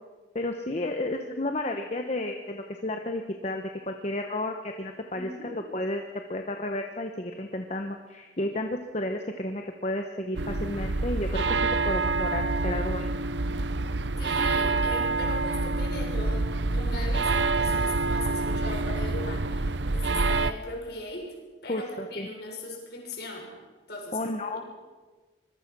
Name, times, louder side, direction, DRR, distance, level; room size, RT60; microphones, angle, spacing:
voice 1, 0.3-6.0 6.3-13.1 21.7-22.3 24.1-24.8, left 1 dB, 35° left, 4 dB, 1.1 m, -32 dB
voice 2, 5.1-5.5 14.2-21.3 21.6-23.5 23.9-24.3, left 2 dB, 60° left, 1 dB, 6.5 m, -39 dB
sound 1, 10.3-20.5, right 3 dB, 75° right, 0.8 m, -27 dB
25.0 x 21.5 x 6.2 m, 1.3 s
head